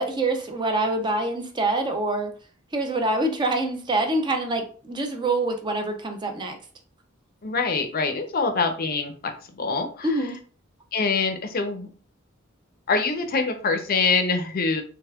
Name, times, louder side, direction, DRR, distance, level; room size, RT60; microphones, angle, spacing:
voice 1, 0.0-2.3 2.7-6.6 10.0-10.4, right 2 dB, 20° right, 5 dB, 0.4 m, -25 dB
voice 2, 7.4-9.1 9.6-10.1 10.9-11.9 12.9-14.8, left 4 dB, 45° left, 6 dB, 0.5 m, -24 dB
3.4 x 3.2 x 2.2 m, 0.41 s
head